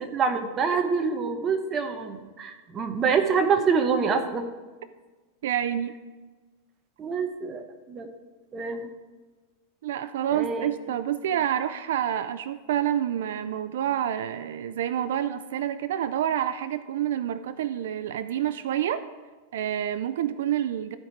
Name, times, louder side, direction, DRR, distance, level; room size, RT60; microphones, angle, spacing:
voice 1, 0.1-4.5 7.0-8.1 8.5-8.9 10.3-10.7, right 5 dB, 20° right, 6 dB, 0.9 m, -26 dB
voice 2, 5.4-6.0 9.8-19.0 19.5-21.0, right 10 dB, 75° right, 13 dB, 0.4 m, -28 dB
14.5 x 5.1 x 4.6 m, 1.3 s
supercardioid pair, 160°, 0 cm